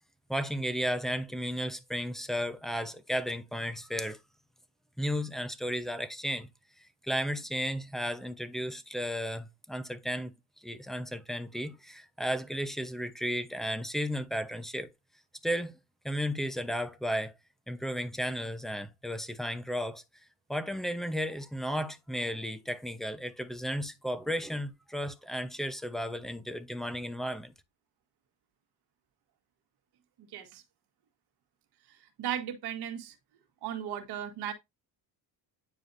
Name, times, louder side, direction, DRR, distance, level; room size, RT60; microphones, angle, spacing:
voice 1, 0.3-4.2 5.0-6.5 7.0-10.3 10.6-14.9 15.4-15.8 16.0-17.3 17.7-20.0 20.5-27.5, equal, ahead, 0.9 m, -34 dB
voice 2, 30.2-30.6 32.2-33.1 33.6-34.5, right 10 dB, 65° right, 1.7 m, -36 dB
9.3 x 4.9 x 2.7 m
cardioid pair, 105°, 41 cm